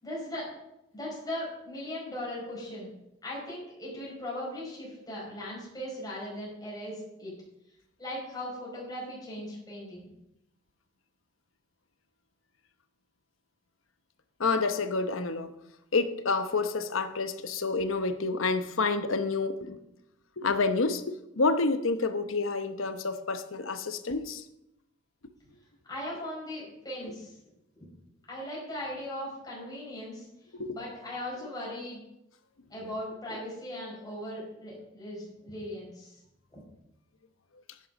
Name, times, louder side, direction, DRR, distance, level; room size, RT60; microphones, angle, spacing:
voice 1, 0.0-0.5 0.9-3.0 3.2-7.4 8.0-10.1 25.9-27.5 28.3-32.0 32.7-36.2 36.5-36.6, left 1 dB, 20° left, 5.0 m, -38 dB
voice 2, 14.4-15.5 15.9-19.8 20.4-24.4 30.5-30.8, left 3 dB, 90° left, 0.9 m, -29 dB
11.0 x 9.3 x 5.3 m
head